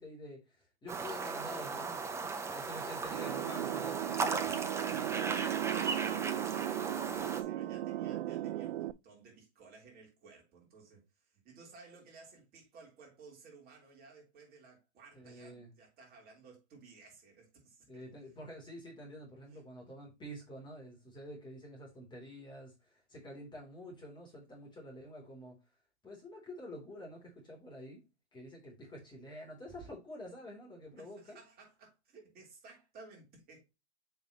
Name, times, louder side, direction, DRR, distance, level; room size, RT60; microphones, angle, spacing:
voice 1, 0.0-4.5 15.1-15.7 17.9-25.6 26.0-28.0 28.3-31.4, equal, 15° left, 3.1 m, -48 dB
sound 1, 0.9-7.4, right 4 dB, 10° right, 0.7 m, -37 dB
sound 2, 3.1-8.9, right 13 dB, 55° right, 0.5 m, -36 dB
voice 2, 4.8-18.0 19.5-19.6 31.0-33.7, right 4 dB, 25° right, 3.5 m, -57 dB
7.0 x 5.6 x 2.9 m
hypercardioid pair, 125°, 34 cm